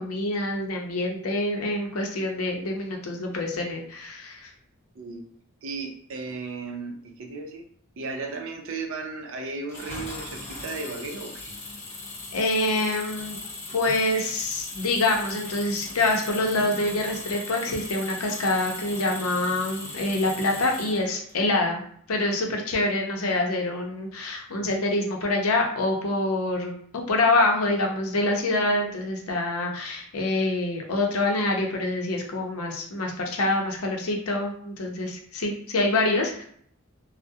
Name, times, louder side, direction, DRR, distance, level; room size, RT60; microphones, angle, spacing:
voice 1, 0.0-4.5 12.3-13.4 13.7-21.8 22.1-36.5, left 2 dB, 75° left, 1 dB, 0.6 m, -26 dB
voice 2, 5.6-7.7 8.0-11.8 24.6-24.7, right 3 dB, 65° right, 3 dB, 0.4 m, -35 dB
Engine, 9.7-21.3, left 2 dB, 35° left, 1.0 m, -38 dB
2.3 x 2.0 x 2.7 m, 0.62 s
head